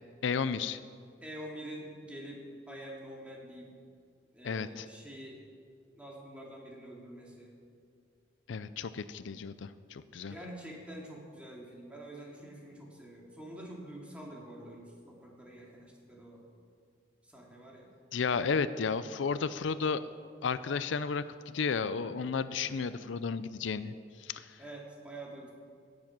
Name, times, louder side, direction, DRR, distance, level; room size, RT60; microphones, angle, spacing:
voice 1, 0.2-0.8 4.4-4.9 8.5-10.3 18.1-20.0 20.4-23.9 24.2-24.6, left 5 dB, 85° left, 13 dB, 0.5 m, -33 dB
voice 2, 1.2-3.7 4.3-5.4 5.9-7.5 10.2-16.4 17.2-17.9 22.5-22.8 24.6-25.5, right 1 dB, 5° right, -3 dB, 2.3 m, -46 dB
16.5 x 7.5 x 6.1 m, 2.2 s
head